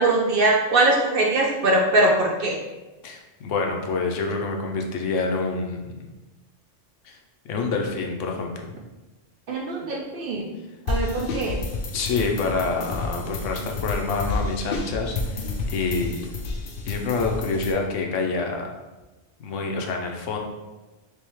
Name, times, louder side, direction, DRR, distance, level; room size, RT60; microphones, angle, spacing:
voice 1, 0.0-2.6 9.5-10.5 10.9-11.6, right 2 dB, 60° right, -1 dB, 0.6 m, -21 dB
voice 2, 3.0-6.1 7.0-7.2 7.5-8.8 11.9-16.2 16.8-18.7 19.4-20.4, left 4 dB, 80° left, 2 dB, 1.0 m, -27 dB
sound 1, 10.9-17.7, left 3 dB, 60° left, 0.6 m, -30 dB
3.5 x 3.1 x 3.0 m, 1.1 s
omnidirectional pair, 1.3 m